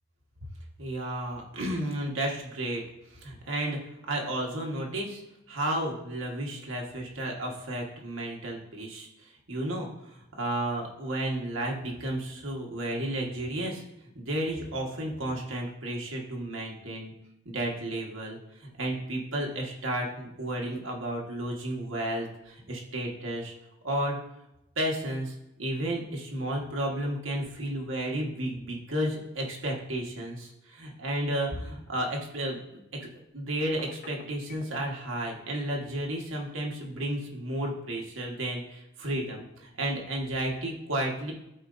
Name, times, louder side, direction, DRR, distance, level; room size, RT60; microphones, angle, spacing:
voice 1, 0.8-2.8 3.1-3.8 4.1-5.2 5.5-9.1 9.5-13.8 14.1-17.1 17.4-23.5 23.8-24.2 24.8-32.6 33.0-33.1 33.3-41.3, right 1 dB, 80° right, 0 dB, 1.4 m, -32 dB
Telephone, 33.7-34.8, left 3 dB, 45° left, 0.7 m, -46 dB
13.0 x 4.4 x 2.6 m, 0.88 s
head